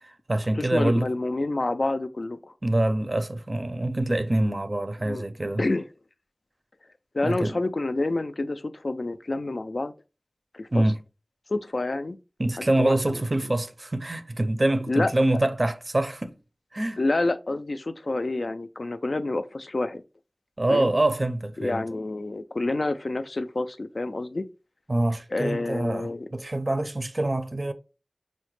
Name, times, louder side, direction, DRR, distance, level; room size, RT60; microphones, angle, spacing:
voice 1, 0.0-1.1 2.6-5.6 7.2-7.6 10.7-11.0 12.4-16.4 16.7-17.0 20.6-21.9 24.9-27.7, right 1 dB, 45° right, 0.4 m, -25 dB
voice 2, 0.6-2.5 5.0-5.2 5.6-5.9 7.1-9.9 10.5-10.9 11.5-12.2 12.6-13.2 14.9-15.1 17.0-20.0 20.7-20.9 21.6-24.5 25.3-26.3, left 2 dB, 75° left, 0.3 m, -28 dB
5.6 x 2.1 x 3.1 m
wide cardioid pair, 50°, 0 cm